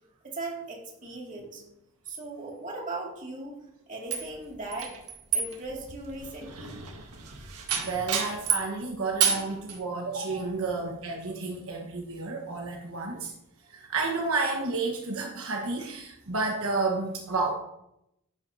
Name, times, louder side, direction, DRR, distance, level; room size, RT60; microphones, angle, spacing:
voice 1, 0.2-1.6 2.1-3.6 3.9-5.0 5.3-6.8, right 2 dB, 35° right, -2 dB, 2.2 m, -38 dB
sound 1, 4.1-8.7 9.2-9.8, right 7 dB, 90° right, 1.5 m, -30 dB
voice 2, 7.8-13.3 13.7-17.5, right 3 dB, 70° right, 0 dB, 1.2 m, -31 dB
10.5 x 9.0 x 2.7 m, 0.83 s
head